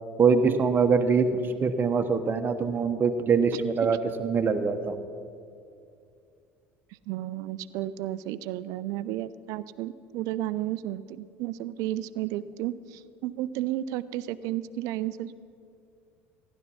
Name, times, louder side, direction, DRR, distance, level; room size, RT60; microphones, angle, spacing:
voice 1, 0.2-5.0, right 5 dB, 30° right, 6 dB, 1.0 m, -24 dB
voice 2, 7.1-15.4, right 13 dB, 55° right, 16 dB, 0.5 m, -33 dB
15.5 x 11.0 x 5.5 m, 2.4 s
figure-of-eight pair, 65°, 7 cm